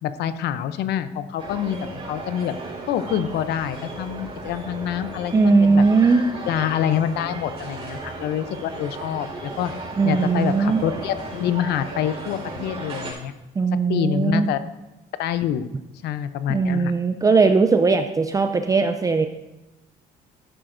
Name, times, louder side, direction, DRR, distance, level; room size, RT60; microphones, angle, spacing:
voice 1, 0.0-1.8 2.1-2.5 2.9-5.8 6.5-9.7 10.0-13.3 13.9-14.6 15.2-15.7 16.0-16.9, left 10 dB, 80° left, 12 dB, 0.6 m, -26 dB
sound 1, 1.4-13.1, right 3 dB, 35° right, 4.2 m, -35 dB
voice 2, 5.3-6.2 10.0-10.8 13.6-14.5 16.5-19.3, right 4 dB, 20° right, 7 dB, 0.5 m, -19 dB
13.5 x 10.0 x 2.6 m, 0.98 s
cardioid pair, 110°, 17 cm